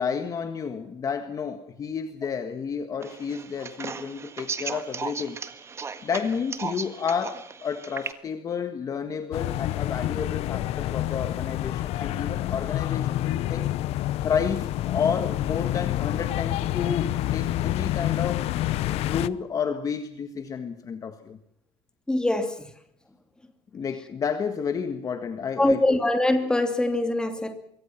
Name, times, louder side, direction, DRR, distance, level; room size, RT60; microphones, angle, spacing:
voice 1, 0.0-5.4 6.0-13.7 14.2-18.5 18.8-21.4 23.7-26.0, left 6 dB, 30° left, 1.6 m, -31 dB
sound 1, 3.0-8.1, right 5 dB, 25° right, 1.6 m, -36 dB
sound 2, 9.3-19.3, left 14 dB, 60° left, 0.9 m, -28 dB
voice 2, 22.1-22.7 25.6-27.5, left 1 dB, 5° left, 2.7 m, -23 dB
25.5 x 23.5 x 6.0 m
cardioid pair, 165°, 12 cm